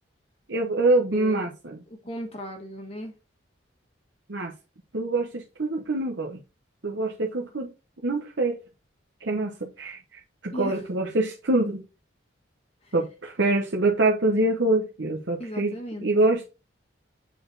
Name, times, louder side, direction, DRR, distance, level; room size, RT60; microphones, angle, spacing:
voice 1, 0.5-1.8 4.3-4.5 4.9-6.4 6.8-7.7 8.0-8.6 9.2-11.8 12.9-15.7 16.0-16.4, right 2 dB, 65° right, 1.0 m, -25 dB
voice 2, 1.1-1.5 1.9-3.1 10.5-10.8 12.8-12.9 15.4-16.1, equal, 30° left, 1.2 m, -36 dB
7.6 x 4.2 x 4.0 m
head